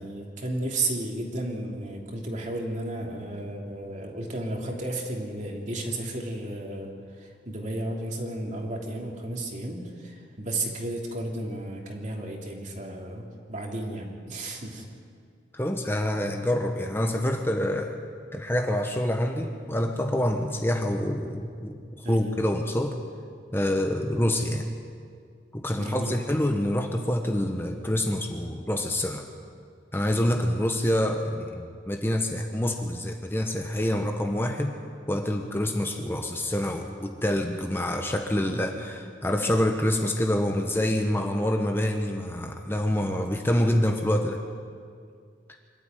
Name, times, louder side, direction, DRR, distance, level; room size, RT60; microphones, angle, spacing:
voice 1, 0.0-6.9 7.2-14.8 22.0-22.3 25.8-26.2, right 1 dB, 45° right, 0 dB, 3.1 m, -33 dB
voice 2, 15.5-18.0 18.3-23.0 23.5-24.7 25.5-29.2 29.9-34.7 35.1-44.4, left 1 dB, 15° left, 3 dB, 1.1 m, -26 dB
25.5 x 13.0 x 9.2 m, 2.2 s
head